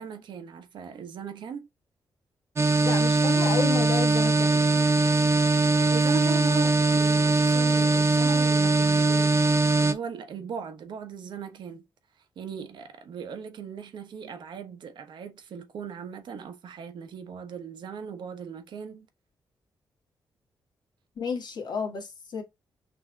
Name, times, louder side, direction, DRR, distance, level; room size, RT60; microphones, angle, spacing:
voice 1, 0.0-1.7 5.9-11.8 12.4-19.1, right 6 dB, 80° right, 0.9 m, -38 dB
sound 1, 2.6-9.9, right 3 dB, 35° right, 0.6 m, -21 dB
voice 2, 2.8-4.7 21.2-22.4, left 6 dB, 65° left, 1.5 m, -31 dB
6.0 x 2.8 x 2.2 m
cardioid pair, 105°, 8 cm